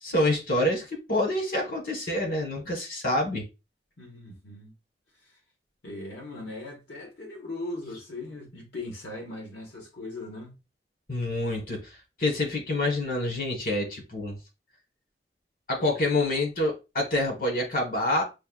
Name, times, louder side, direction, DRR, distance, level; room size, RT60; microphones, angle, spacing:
voice 1, 0.0-3.4 11.1-11.8 12.2-14.3 15.7-18.2, left 1 dB, 50° left, 1.4 m, -27 dB
voice 2, 4.0-4.7 5.2-5.3 5.8-10.6, left 2 dB, 80° left, 1.1 m, -39 dB
6.6 x 2.2 x 2.4 m
head